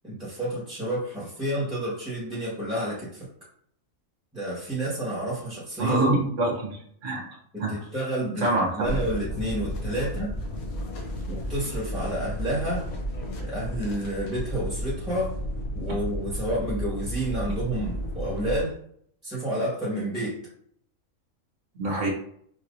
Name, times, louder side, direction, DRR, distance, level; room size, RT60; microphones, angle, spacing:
voice 1, 0.0-3.3 4.3-6.0 7.5-10.3 11.3-12.9 13.4-15.4 15.7-18.8 19.2-20.5, right 1 dB, 5° right, -8 dB, 1.4 m, -30 dB
voice 2, 5.8-6.8 7.0-7.2 7.6-7.7 8.4-8.9 15.8-15.9 21.8-22.1, right 2 dB, 60° right, -2 dB, 1.4 m, -25 dB
sound 1, 8.8-18.6, equal, 85° left, 1.3 m, -32 dB
5.1 x 2.9 x 2.6 m, 0.65 s
omnidirectional pair, 1.4 m